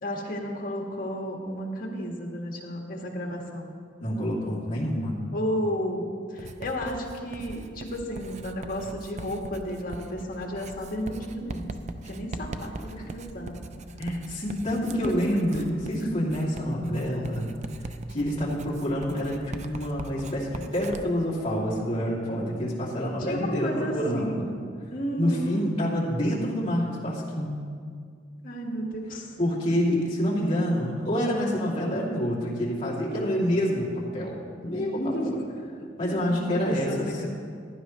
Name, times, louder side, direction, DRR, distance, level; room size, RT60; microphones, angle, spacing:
voice 1, 0.0-3.7 5.3-13.5 14.8-15.2 15.5-15.6 15.9-16.2 17.1-17.2 23.2-24.5 24.9-25.7 28.4-29.3 34.7-37.3, equal, 50° left, 0 dB, 1.7 m, -33 dB
voice 2, 4.0-5.2 14.0-17.5 18.1-24.4 25.2-27.6 29.4-35.1 36.0-37.3, equal, 30° left, -6 dB, 2.5 m, -27 dB
Writing, 6.4-21.0, right 2 dB, 40° right, 0.5 m, -41 dB
15.5 x 11.0 x 3.1 m, 2.1 s
head